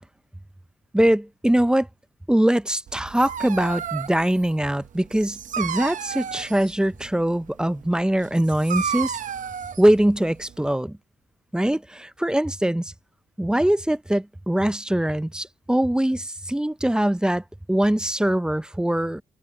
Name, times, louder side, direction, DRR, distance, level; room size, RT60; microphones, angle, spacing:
voice 1, 0.9-1.9 2.3-9.2 9.8-11.0 11.5-12.9 13.4-19.2, right 1 dB, 5° right, 0.5 m, -22 dB
Dog, 2.9-10.7, right 8 dB, 70° right, 0.6 m, -33 dB
wide cardioid pair, 110°, 14 cm